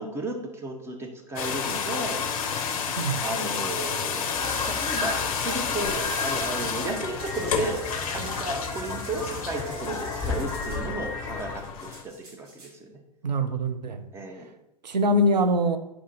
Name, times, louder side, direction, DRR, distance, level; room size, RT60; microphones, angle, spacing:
voice 1, 0.0-2.2 3.2-7.9 8.1-12.5 12.8-13.0 14.1-14.5, right 2 dB, 10° right, 2 dB, 0.4 m, -34 dB
sound 1, 1.4-12.0, left 6 dB, 55° left, 0.5 m, -31 dB
sound 2, 2.9-3.9 4.5-6.5 7.2-10.8 11.8-12.7, right 1 dB, 60° right, 1.5 m, -47 dB
sound 3, 4.3-11.6, left 2 dB, 20° left, 1.0 m, -34 dB
voice 2, 13.2-14.0 14.8-15.8, equal, 80° right, 9 dB, 0.4 m, -23 dB
4.6 x 2.4 x 3.9 m, 0.88 s
figure-of-eight pair, 95°, 21 cm